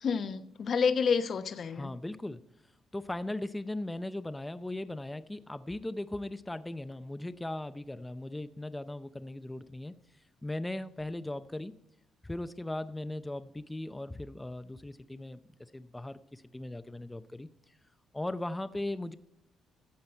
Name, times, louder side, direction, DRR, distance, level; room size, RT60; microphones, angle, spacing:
voice 1, 0.0-1.9, left 6 dB, 55° left, 10 dB, 0.9 m, -29 dB
voice 2, 1.7-2.4 2.9-9.9 10.4-11.7 12.2-15.4 15.7-17.5 18.1-19.2, left 1 dB, 10° left, 12 dB, 0.6 m, -38 dB
14.0 x 7.5 x 4.4 m, 0.80 s
cardioid pair, 90°, 0 cm